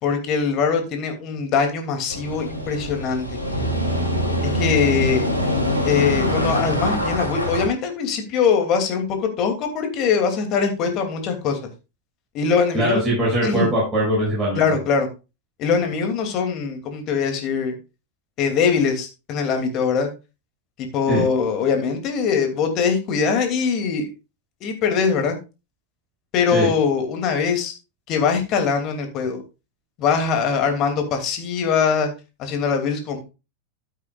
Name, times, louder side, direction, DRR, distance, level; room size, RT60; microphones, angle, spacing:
voice 1, 0.0-3.4 4.4-5.2 5.8-11.7 12.3-13.0 13.4-13.7 14.5-15.1 15.6-17.7 18.4-20.1 20.8-24.1 24.6-25.4 26.3-27.7 28.1-29.4 30.0-32.1 32.4-33.3, left 6 dB, 35° left, 5 dB, 2.8 m, -22 dB
sound 1, 2.1-7.7, equal, 85° right, 3.0 m, -24 dB
voice 2, 12.7-14.7 21.1-21.2 26.5-26.7, right 1 dB, 20° right, -5 dB, 6.3 m, -21 dB
13.5 x 8.5 x 2.5 m, 0.28 s
figure-of-eight pair, 90°, 0 cm